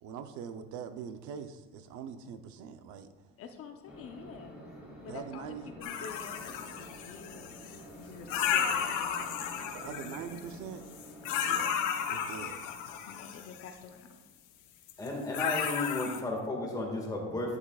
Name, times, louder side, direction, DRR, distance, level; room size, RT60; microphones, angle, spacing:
voice 1, 0.0-3.3 5.1-5.6 9.7-10.8 11.5-12.6, right 7 dB, 70° right, 9 dB, 0.7 m, -43 dB
voice 2, 3.4-4.6 5.0-10.2 13.1-14.2, left 6 dB, 45° left, 5 dB, 0.7 m, -48 dB
sound 1, 3.9-14.9, equal, 5° right, 2.0 m, -50 dB
sound 2, 5.8-7.8 8.3-10.5 10.9-13.7 14.9-15.1 15.3-16.2, left 8 dB, 75° left, 0.9 m, -34 dB
voice 3, 15.0-17.6, left 2 dB, 10° left, -1 dB, 1.9 m, -33 dB
11.0 x 9.9 x 2.4 m, 1.2 s
cardioid pair, 145°, 30 cm